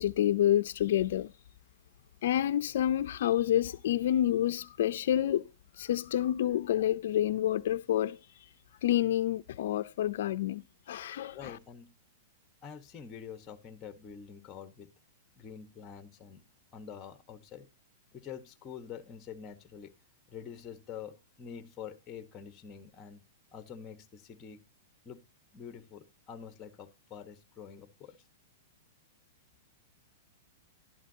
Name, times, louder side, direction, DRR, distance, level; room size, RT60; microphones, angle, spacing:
voice 1, 0.0-1.3 2.2-5.5 5.8-8.2 8.8-11.6, left 11 dB, 65° left, 0.5 m, -28 dB
voice 2, 11.3-11.9 12.6-14.9 15.4-16.4 16.7-17.7 18.1-19.9 20.3-23.2 23.5-24.6 25.0-25.2 25.5-28.2, left 7 dB, 25° left, 1.3 m, -46 dB
12.0 x 11.0 x 2.8 m
hypercardioid pair, 145°, 0 cm